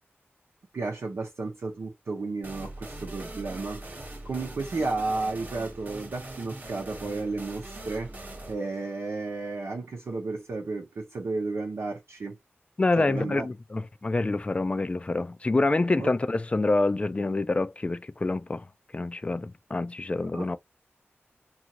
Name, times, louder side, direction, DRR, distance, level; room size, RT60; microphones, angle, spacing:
voice 1, 0.7-3.9 4.2-8.1 8.5-12.4 13.0-13.5 16.0-16.1 20.3-20.6, right 3 dB, 80° right, 0.8 m, -33 dB
sound 1, 2.4-9.9, right 2 dB, 40° right, 0.9 m, -42 dB
voice 2, 12.8-18.7 18.9-20.6, left 2 dB, 25° left, 0.3 m, -27 dB
2.7 x 2.5 x 2.8 m
wide cardioid pair, 90°, 4 cm